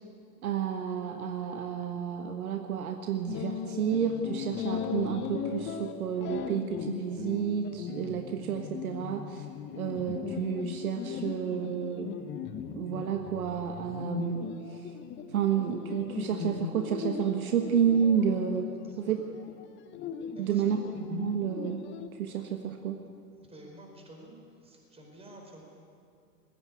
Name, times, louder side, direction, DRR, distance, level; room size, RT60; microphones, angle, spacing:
voice 1, 0.4-9.4 9.8-12.1 12.7-14.8 15.3-18.7 19.0-19.2 20.4-20.8 21.1-21.8 22.1-23.0, right 8 dB, 60° right, 5 dB, 1.5 m, -30 dB
sound 1, 3.3-22.1, left 8 dB, 25° left, 0.9 m, -38 dB
voice 2, 18.7-19.2 20.3-20.7 23.5-24.3 24.6-25.6, right 1 dB, 10° right, 0 dB, 4.8 m, -50 dB
20.0 x 15.5 x 8.4 m, 2.4 s
figure-of-eight pair, 105°, 49 cm